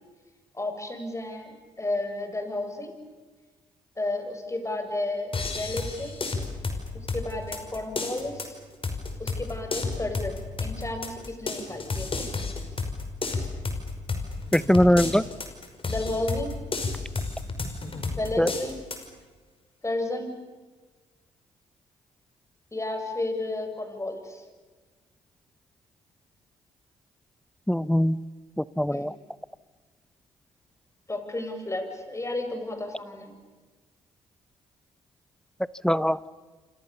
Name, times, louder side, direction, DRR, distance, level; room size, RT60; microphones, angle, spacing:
voice 1, 0.5-2.9 4.0-6.2 6.9-8.6 9.2-12.3 15.9-16.6 18.2-18.8 19.8-20.4 22.7-24.4 28.9-29.1 31.1-33.3, left 2 dB, 20° left, 6 dB, 7.3 m, -32 dB
sound 1, 5.3-19.1, left 3 dB, 40° left, 5.6 m, -32 dB
voice 2, 14.5-15.2 18.4-18.5 27.7-28.2 28.6-29.1 35.8-36.3, equal, 5° left, 18 dB, 0.8 m, -21 dB
27.5 x 27.5 x 7.1 m, 1.3 s
hypercardioid pair, 50°, 14 cm